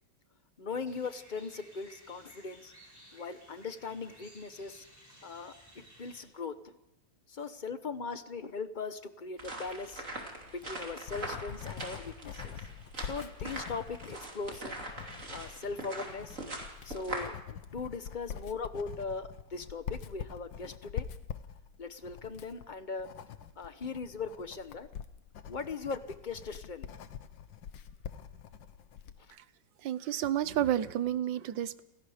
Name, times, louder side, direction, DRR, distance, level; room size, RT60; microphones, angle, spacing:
voice 1, 0.6-2.7 3.1-4.8 5.2-6.8 7.3-10.0 10.6-12.5 13.0-14.7 15.3-16.4 16.8-21.1 21.8-23.1 23.6-24.9 25.5-26.9, left 4 dB, 35° left, 11 dB, 0.8 m, -39 dB
sound 1, 0.9-6.2, equal, 10° left, 5.9 m, -57 dB
sound 2, 9.4-17.3, right 2 dB, 40° right, 3.4 m, -42 dB
Writing, 10.4-29.2, left 8 dB, 75° left, 1.7 m, -45 dB
voice 2, 29.8-31.8, right 11 dB, 75° right, 15 dB, 1.6 m, -30 dB
30.0 x 17.0 x 5.0 m, 0.90 s
omnidirectional pair, 2.0 m